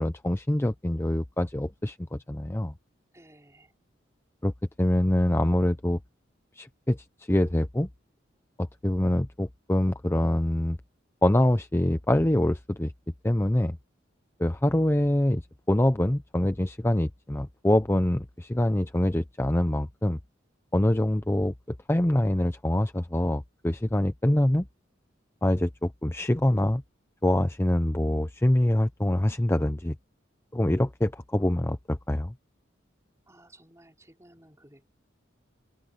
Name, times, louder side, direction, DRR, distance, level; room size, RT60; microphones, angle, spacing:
voice 1, 0.0-2.7 4.4-4.5 4.8-6.0 6.6-7.0 7.3-7.9 8.6-10.8 11.2-12.9 13.2-13.8 14.4-15.4 15.7-20.2 20.7-21.5 21.9-24.7 25.4-26.8 27.2-29.9 30.5-32.3, left 1 dB, 15° left, 0.6 m, -25 dB
voice 2, 3.1-3.7 33.3-34.9, right 1 dB, 15° right, 4.5 m, -55 dB
open air
head